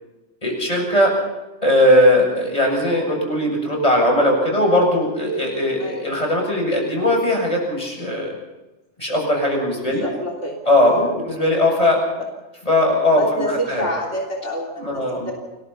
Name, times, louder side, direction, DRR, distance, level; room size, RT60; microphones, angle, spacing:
voice 1, 0.4-1.2 1.6-8.4 9.0-10.0 10.7-12.1 12.7-13.8 14.8-15.3, left 1 dB, 30° left, 0 dB, 7.7 m, -19 dB
voice 2, 5.8-6.2 9.8-10.6 10.9-11.1 13.1-15.3, equal, 80° left, -2 dB, 3.8 m, -28 dB
30.0 x 21.5 x 4.3 m, 1.1 s
omnidirectional pair, 1.2 m